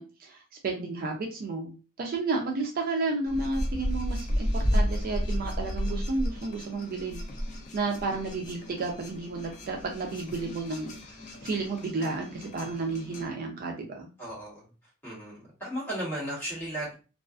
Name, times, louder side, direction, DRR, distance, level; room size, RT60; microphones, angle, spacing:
voice 1, 0.0-7.2 7.7-10.9 11.4-14.1, right 3 dB, 45° right, 1 dB, 0.4 m, -32 dB
sound 1, 3.2-13.2, equal, 35° left, 0.5 m, -33 dB
voice 2, 14.2-14.7 15.0-16.9, right 1 dB, 10° left, -8 dB, 1.3 m, -35 dB
2.4 x 2.3 x 2.3 m, 0.34 s
head